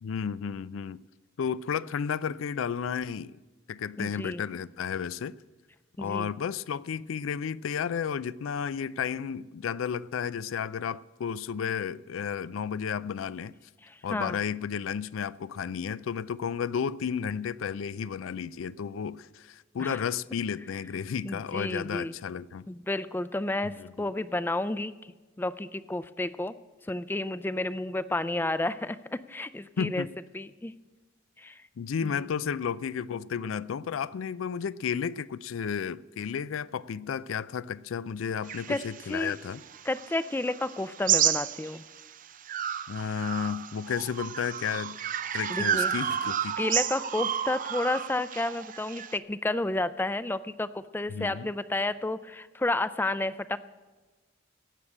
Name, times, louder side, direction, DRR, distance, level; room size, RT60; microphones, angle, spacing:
voice 1, 0.0-1.0 1.4-3.4 3.7-5.4 6.0-13.5 14.0-22.7 23.6-23.9 29.8-30.1 31.8-39.6 42.9-45.0 45.3-46.5 51.1-51.5, left 7 dB, 90° left, 0.4 m, -32 dB
voice 2, 4.0-4.4 6.0-6.3 13.8-14.4 19.8-20.0 21.2-22.1 22.7-24.9 25.4-26.6 26.9-30.1 30.3-30.7 31.4-31.6 32.0-32.2 38.7-38.8 39.1-39.4 39.9-41.8 45.5-45.9 46.6-53.6, left 2 dB, 10° left, 0.4 m, -31 dB
sound 1, 38.5-42.0 42.5-49.2, right 9 dB, 40° right, 0.5 m, -31 dB
16.5 x 6.6 x 8.6 m
head